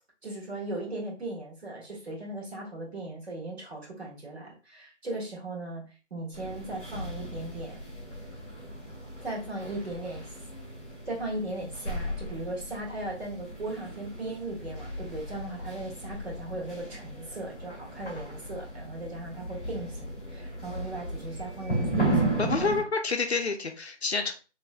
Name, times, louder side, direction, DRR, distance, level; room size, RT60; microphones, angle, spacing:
voice 1, 0.2-5.8 6.1-7.8 9.2-10.2 11.0-22.7, right 2 dB, 60° right, -3 dB, 1.6 m, -37 dB
sound 1, 6.3-22.8, right 2 dB, 10° left, 0.9 m, -35 dB
voice 2, 22.4-24.3, left 4 dB, 60° left, 5 dB, 0.6 m, -28 dB
3.1 x 3.1 x 2.3 m, 0.34 s
figure-of-eight pair, 165°, 37 cm